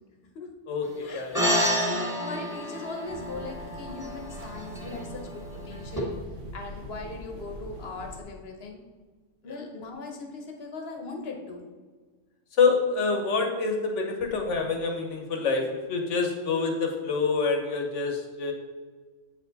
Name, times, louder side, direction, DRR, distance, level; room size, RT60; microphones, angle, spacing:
voice 1, 0.7-1.4 9.5-9.6 12.6-18.5, left 4 dB, 75° left, 3 dB, 1.3 m, -26 dB
sound 1, 1.3-6.0, equal, 5° right, 1.6 m, -30 dB
voice 2, 1.9-6.2 6.5-8.8 9.4-11.7, left 3 dB, 55° left, 3 dB, 1.2 m, -39 dB
sound 2, 3.1-8.2, right 1 dB, 85° right, 1.2 m, -43 dB
7.9 x 4.6 x 4.0 m, 1.4 s
omnidirectional pair, 1.3 m